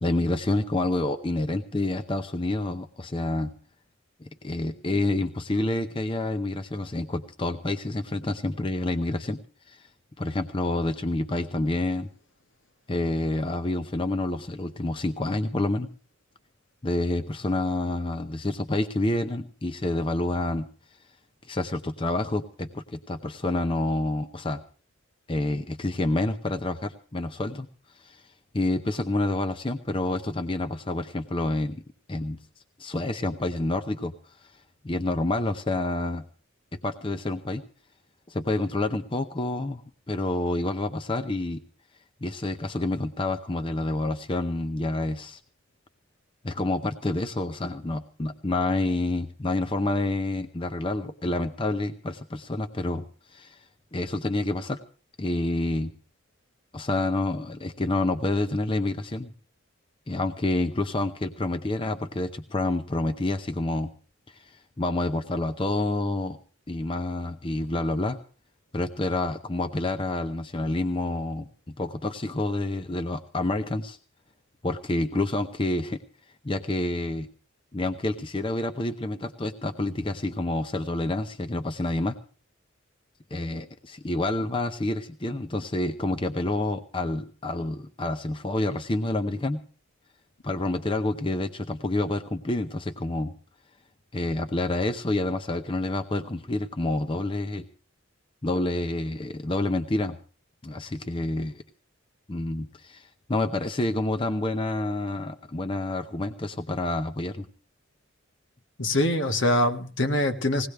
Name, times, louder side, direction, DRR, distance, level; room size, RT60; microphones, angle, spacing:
voice 1, 0.0-3.5 4.2-9.4 9.7-9.9 10.2-12.1 12.9-15.9 16.8-20.7 21.4-24.6 25.3-27.7 27.9-28.3 28.5-31.8 32.1-32.4 32.8-34.5 34.8-36.2 36.8-37.6 38.3-41.6 42.2-45.4 46.4-53.6 53.9-54.8 55.2-55.9 56.7-59.3 60.1-63.9 64.3-66.4 66.7-68.2 68.7-74.0 74.6-76.0 76.4-77.3 77.7-82.1 83.3-89.6 90.4-93.3 94.1-97.7 98.4-100.2 100.6-101.6 102.3-107.5, left 2 dB, 25° left, 8 dB, 0.7 m, -28 dB
voice 2, 108.8-110.7, left 1 dB, 65° left, 6 dB, 1.6 m, -24 dB
20.5 x 17.5 x 3.4 m, 0.38 s
head